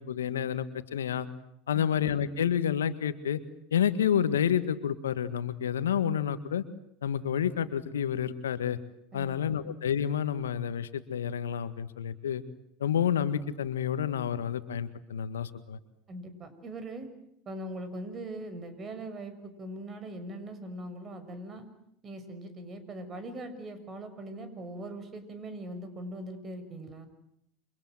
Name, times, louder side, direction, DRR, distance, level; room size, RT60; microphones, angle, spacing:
voice 1, 0.1-0.7 0.9-1.3 1.7-3.4 3.7-6.6 7.0-8.8 9.1-12.4 12.8-15.8, left 9 dB, 80° left, 12 dB, 1.7 m, -29 dB
voice 2, 9.1-9.6 16.1-17.1 17.4-21.6 22.0-27.1, right 1 dB, 30° right, 10 dB, 6.8 m, -41 dB
29.0 x 25.5 x 7.9 m, 0.76 s
hypercardioid pair, 85°, 0 cm